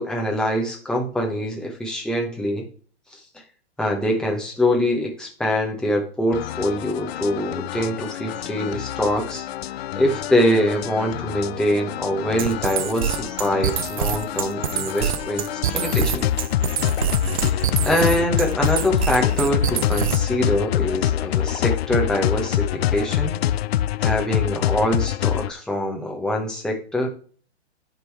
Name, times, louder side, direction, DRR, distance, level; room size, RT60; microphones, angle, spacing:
voice 1, 0.0-2.6 3.1-3.2 3.8-9.4 10.0-16.3 17.3-23.3 24.0-27.1, equal, ahead, 0 dB, 1.0 m, -24 dB
sound 1, 6.3-25.5, left 12 dB, 65° left, 0.5 m, -26 dB
sound 2, 12.4-20.4, right 10 dB, 35° right, 0.4 m, -25 dB
9.6 x 3.8 x 4.7 m, 0.43 s
hypercardioid pair, 155°, 34 cm